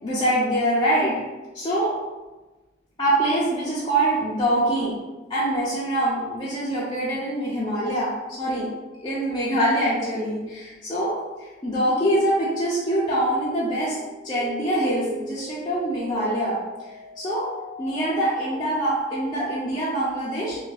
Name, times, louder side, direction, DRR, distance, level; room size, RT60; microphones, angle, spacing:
voice 1, 0.0-1.1 1.5-1.9 3.0-4.9 5.3-8.1 8.4-8.7 9.0-11.2 11.4-14.0 14.2-16.6 17.2-17.5 17.8-20.6, right 1 dB, 25° left, -9 dB, 0.5 m, -24 dB
sound 1, 13.3-19.4, right 1 dB, 60° right, 0.3 m, -40 dB
2.7 x 2.5 x 3.2 m, 1.2 s
head